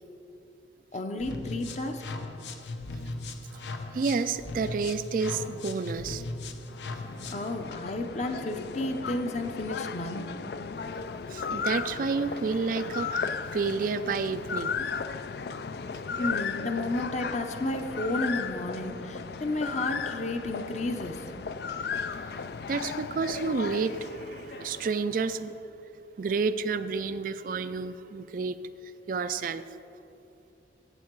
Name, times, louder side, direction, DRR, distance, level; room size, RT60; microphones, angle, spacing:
voice 1, 0.9-2.0 7.3-10.3 16.2-21.2, left 2 dB, 40° left, 6 dB, 0.8 m, -32 dB
sound 1, 1.2-7.5, left 2 dB, 85° left, 0.8 m, -38 dB
voice 2, 3.9-6.2 11.3-14.8 22.7-25.6 26.2-28.6 29.1-29.6, right 4 dB, 50° right, 12 dB, 0.3 m, -30 dB
sound 2, 6.6-25.0, left 5 dB, 60° left, 0.4 m, -35 dB
15.5 x 7.5 x 4.6 m, 2.8 s
head